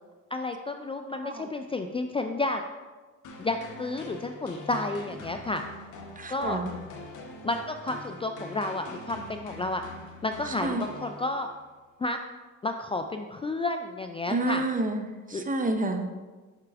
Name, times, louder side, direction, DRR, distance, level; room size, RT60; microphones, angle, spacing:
voice 1, 0.3-2.6 3.4-5.6 6.3-6.6 7.4-9.8 10.2-11.5 12.0-12.2 12.6-14.6 15.3-15.4, left 2 dB, 20° left, 6 dB, 0.3 m, -31 dB
voice 2, 1.1-1.5 6.2-6.7 10.5-10.8 14.3-16.1, right 2 dB, 25° right, 7 dB, 0.7 m, -29 dB
sound 1, 3.2-11.6, left 2 dB, 80° left, 1.1 m, -44 dB
6.6 x 5.9 x 3.5 m, 1.3 s
cardioid pair, 90°, 30 cm